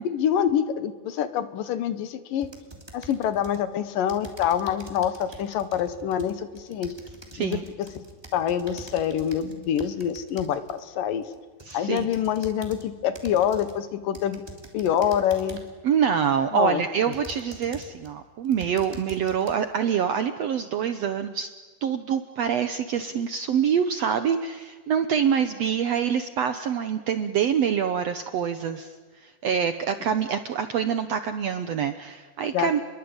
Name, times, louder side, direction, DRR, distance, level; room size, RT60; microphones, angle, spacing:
voice 1, 0.0-2.5 2.9-6.9 7.4-7.6 7.9-8.0 8.3-11.3 11.7-14.4 14.7-15.6 16.5-16.8 32.5-32.8, left 9 dB, 70° left, 12 dB, 2.9 m, -26 dB
sound 1, 2.4-3.6 4.1-10.8 11.3-12.9 13.2-13.8 14.1-15.8 16.4-16.5 17.1-18.1 18.4-19.5, right 2 dB, 10° right, 2.5 m, -45 dB
voice 2, 7.3-7.6 11.7-12.1 15.8-21.5 21.8-32.8, right 8 dB, 75° right, 9 dB, 1.5 m, -25 dB
29.5 x 22.5 x 8.9 m, 1.4 s
omnidirectional pair, 4.3 m